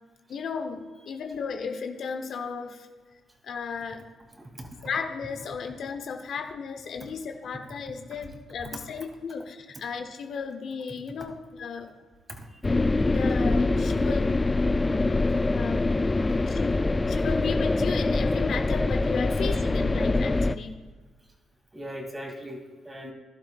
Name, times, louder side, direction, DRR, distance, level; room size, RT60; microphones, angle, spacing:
voice 1, 0.3-2.9 3.4-4.0 4.8-11.9 13.1-14.3 15.5-15.9 16.4-20.8 23.0-23.1, left 5 dB, 65° left, 5 dB, 1.0 m, -34 dB
voice 2, 4.4-4.9 12.3-12.5 21.7-23.1, equal, 25° right, 2 dB, 2.6 m, -39 dB
sound 1, 12.6-20.6, left 2 dB, 25° left, 0.4 m, -24 dB
15.5 x 12.0 x 2.4 m, 1.4 s
supercardioid pair, 55°, 0 cm